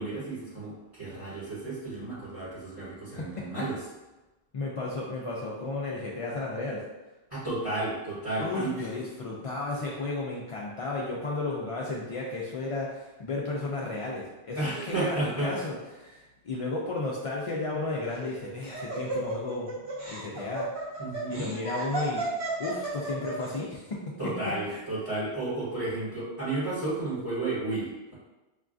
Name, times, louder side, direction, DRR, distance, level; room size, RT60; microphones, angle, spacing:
voice 1, 0.0-3.8 7.3-8.9 14.5-15.5 21.0-21.5 24.2-28.1, right 2 dB, 30° right, -10 dB, 1.2 m, -32 dB
voice 2, 4.5-6.8 8.4-15.2 15.4-19.7 20.1-20.7 21.3-22.3 22.6-24.3 24.7-24.8, left 2 dB, 60° left, -4 dB, 0.3 m, -33 dB
Laughter, 18.0-23.5, right 2 dB, 55° right, 1.5 m, -33 dB
5.2 x 2.4 x 2.5 m, 1.1 s
omnidirectional pair, 1.1 m